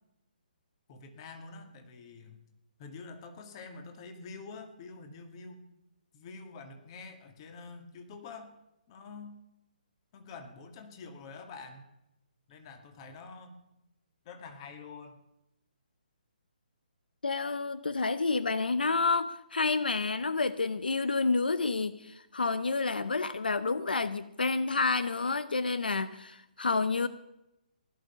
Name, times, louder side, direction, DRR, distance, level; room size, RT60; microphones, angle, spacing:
voice 1, 0.9-2.4 2.8-5.6 6.1-8.5 8.9-9.4 10.1-11.8 12.5-13.6 14.3-15.2, left 4 dB, 35° left, 7 dB, 2.1 m, -47 dB
voice 2, 17.2-27.1, left 3 dB, 90° left, 15 dB, 0.7 m, -29 dB
16.5 x 11.0 x 5.6 m, 0.89 s
hypercardioid pair, 145°, 5 cm